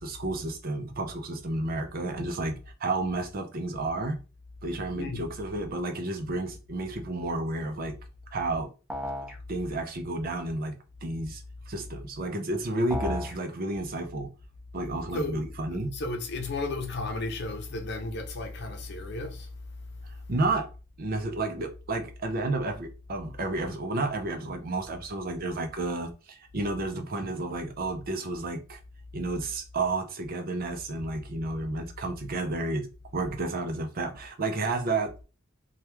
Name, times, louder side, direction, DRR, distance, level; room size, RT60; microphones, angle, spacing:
voice 1, 0.0-4.2 4.6-7.9 8.3-8.7 9.5-10.8 11.0-14.3 14.7-15.9 20.3-20.7 21.0-28.8 29.1-32.9 33.1-35.2, right 2 dB, 50° right, 0.6 m, -31 dB
voice 2, 4.9-5.3 15.1-19.5, left 2 dB, 60° left, 0.7 m, -34 dB
sound 1, 8.9-9.4 12.9-13.4, left 1 dB, 10° right, 0.8 m, -32 dB
2.9 x 2.3 x 3.3 m
head